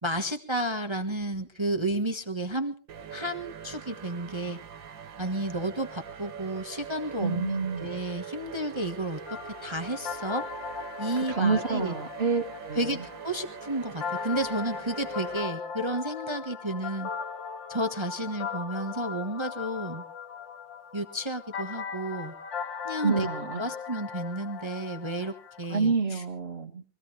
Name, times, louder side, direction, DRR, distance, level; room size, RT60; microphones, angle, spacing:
voice 1, 0.0-2.8 3.1-4.6 5.2-7.5 7.8-9.2 9.6-10.4 11.0-11.9 12.7-17.1 17.7-20.0 20.9-22.3 22.8-23.3 23.6-26.2, right 1 dB, 15° right, 7 dB, 1.2 m, -32 dB
sound 1, 2.9-15.4, right 7 dB, 85° right, 2.0 m, -43 dB
voice 2, 7.2-7.9 11.3-12.8 23.0-23.6 25.7-26.8, right 4 dB, 35° right, 6 dB, 2.1 m, -28 dB
sound 2, 9.3-25.6, left 6 dB, 80° left, 2.2 m, -38 dB
24.5 x 16.0 x 3.2 m, 0.36 s
omnidirectional pair, 2.0 m